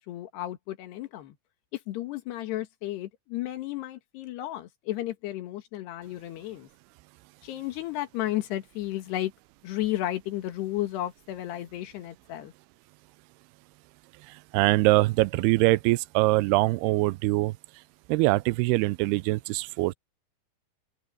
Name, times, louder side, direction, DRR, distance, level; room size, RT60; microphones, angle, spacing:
voice 1, 0.1-1.4 1.7-6.7 7.4-9.3 9.6-12.5, left 14 dB, 85° left, 3.7 m, -33 dB
voice 2, 14.5-17.5 18.1-19.9, right 22 dB, 85° right, 2.5 m, -23 dB
open air
omnidirectional pair, 4.7 m